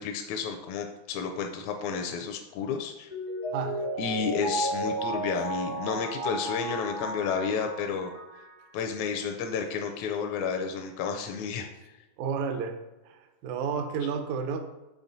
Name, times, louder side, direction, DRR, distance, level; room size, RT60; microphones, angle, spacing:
voice 1, 0.0-3.1 4.0-8.1 8.7-11.7, left 6 dB, 80° left, 4 dB, 1.9 m, -31 dB
Mallet percussion, 3.1-8.6 9.0-9.1, right 1 dB, 25° right, 0.5 m, -33 dB
voice 2, 12.2-12.8 13.1-14.6, right 6 dB, 75° right, 6 dB, 2.0 m, -31 dB
7.3 x 4.1 x 4.0 m, 1.1 s
omnidirectional pair, 3.4 m